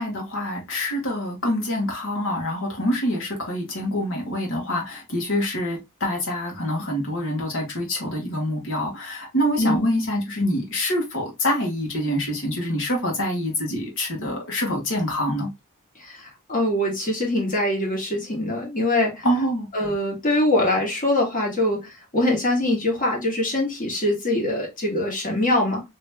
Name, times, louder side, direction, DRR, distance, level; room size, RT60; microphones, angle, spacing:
voice 1, 0.0-15.5 19.2-19.7, equal, 60° left, 1.4 m, -26 dB
voice 2, 9.6-9.9 16.5-19.2 19.7-21.9 22.1-25.8, left 1 dB, 40° left, 1.5 m, -23 dB
3.0 x 2.9 x 3.3 m
head